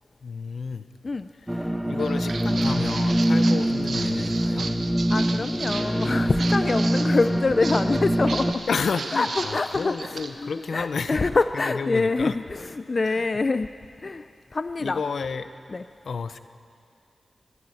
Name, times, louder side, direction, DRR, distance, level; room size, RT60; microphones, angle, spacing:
voice 1, 0.2-0.8 1.5-1.6 1.9-4.7 8.7-11.2 11.5-12.4 13.0-13.3 14.8-15.5 16.1-16.4, left 5 dB, 75° left, 11 dB, 0.8 m, -31 dB
sound 1, 1.5-8.5, right 1 dB, 5° right, 1.2 m, -24 dB
Walk footsteps, 2.0-10.3, right 4 dB, 70° right, 1.4 m, -35 dB
voice 2, 5.1-8.6 9.1-13.7 14.0-14.2 14.5-15.0 15.7-15.8, left 3 dB, 40° left, 11 dB, 0.5 m, -25 dB
26.0 x 11.0 x 9.8 m, 2.4 s
wide cardioid pair, 90°, 0 cm